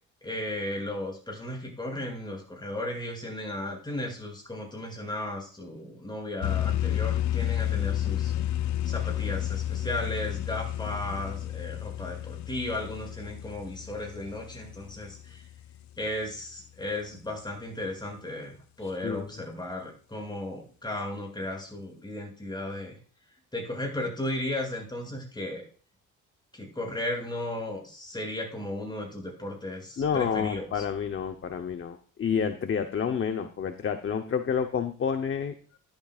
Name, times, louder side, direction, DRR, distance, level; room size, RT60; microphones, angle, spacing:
voice 1, 0.2-8.3 8.8-15.5 16.0-23.0 23.5-25.6 26.5-30.8, left 1 dB, 15° left, 0 dB, 7.1 m, -35 dB
sound 1, 6.4-15.9, left 12 dB, 65° left, 0.5 m, -31 dB
voice 2, 18.8-19.3 30.0-35.5, left 7 dB, 40° left, 7 dB, 0.9 m, -29 dB
14.5 x 11.5 x 2.5 m, 0.41 s
cardioid pair, 90°, 30 cm